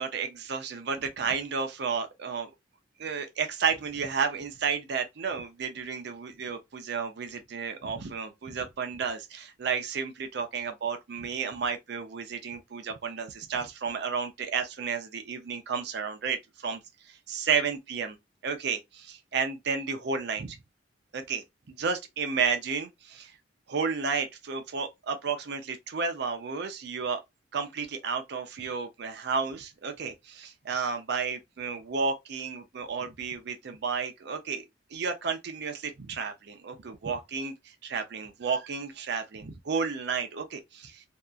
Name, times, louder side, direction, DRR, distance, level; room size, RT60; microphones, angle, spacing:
voice 1, 0.0-2.5 3.0-16.8 17.3-18.2 18.4-20.6 21.1-21.4 21.8-23.3 23.7-27.2 27.5-34.6 34.9-41.0, right 5 dB, 65° right, 0.5 m, -32 dB
2.7 x 2.3 x 2.3 m
head